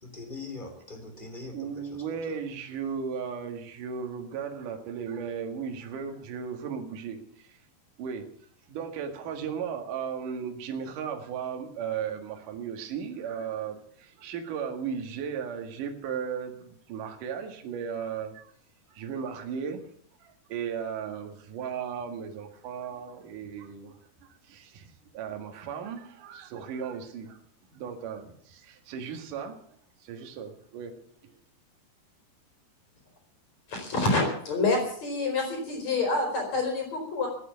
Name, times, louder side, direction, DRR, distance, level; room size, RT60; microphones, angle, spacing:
voice 1, 0.0-2.4, left 3 dB, 15° left, 2.4 m, -42 dB
voice 2, 1.1-7.6 8.0-8.2 8.7-18.5 18.9-19.8 20.2-27.4 27.7-29.5 30.0-30.9 31.2-31.4, right 7 dB, 60° right, 3.1 m, -36 dB
voice 3, 33.7-37.3, left 3 dB, 40° left, 5.7 m, -27 dB
16.0 x 9.7 x 9.5 m
omnidirectional pair, 4.7 m